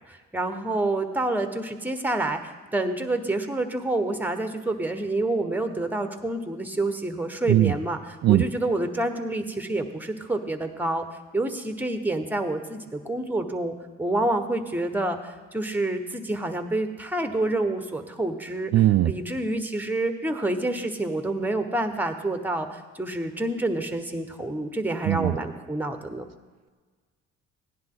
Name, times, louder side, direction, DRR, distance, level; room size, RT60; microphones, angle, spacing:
voice 1, 0.1-11.0 11.3-26.3, right 2 dB, 5° right, 7 dB, 1.2 m, -28 dB
voice 2, 18.7-19.1 25.1-25.3, right 14 dB, 60° right, 9 dB, 0.5 m, -19 dB
16.0 x 10.5 x 3.9 m, 1.4 s
cardioid pair, 90°, 30 cm